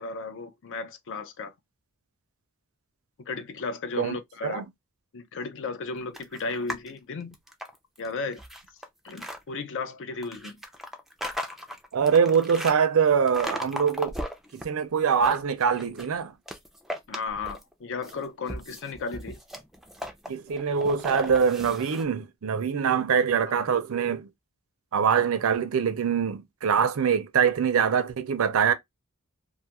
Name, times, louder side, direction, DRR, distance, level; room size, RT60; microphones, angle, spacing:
voice 1, 0.0-1.5 3.3-4.6 5.1-7.4 8.0-8.4 9.0-10.6 17.1-19.4 23.5-23.6, left 4 dB, 60° left, 0.5 m, -34 dB
sound 1, 6.1-6.9 7.3-9.4 10.2-12.8 13.3-14.6 15.0-16.1 16.5-17.7 18.0-22.0, equal, ahead, 0.4 m, -37 dB
voice 2, 11.9-14.2 14.5-16.3 20.3-24.3 24.9-28.7, right 6 dB, 70° right, 0.5 m, -24 dB
2.5 x 2.3 x 2.8 m
head